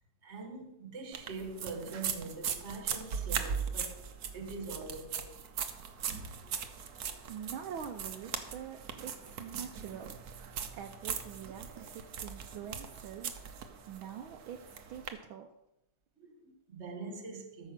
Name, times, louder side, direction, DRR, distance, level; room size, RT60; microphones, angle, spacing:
voice 1, 0.2-4.0 4.3-5.3 16.2-17.7, right 3 dB, 35° right, 1.5 m, -43 dB
sound 1, 1.1-15.1, right 7 dB, 55° right, 1.1 m, -39 dB
voice 2, 7.3-10.2 10.7-13.4 13.9-15.5, right 8 dB, 75° right, 1.4 m, -45 dB
13.5 x 5.8 x 5.9 m
omnidirectional pair, 2.4 m